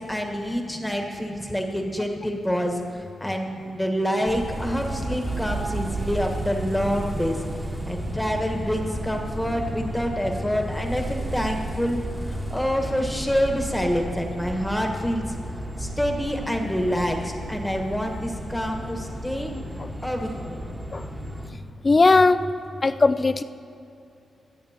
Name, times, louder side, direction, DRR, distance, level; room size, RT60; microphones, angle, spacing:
voice 1, 0.0-7.4 7.9-15.4 15.8-19.5 20.0-20.6, equal, 5° left, 2 dB, 1.4 m, -27 dB
sound 1, 4.2-21.5, right 1 dB, 15° right, 1.5 m, -33 dB
voice 2, 21.8-22.4 22.8-23.4, left 3 dB, 30° left, 12 dB, 0.4 m, -17 dB
24.5 x 8.4 x 3.0 m, 2.6 s
cardioid pair, 100°, 0 cm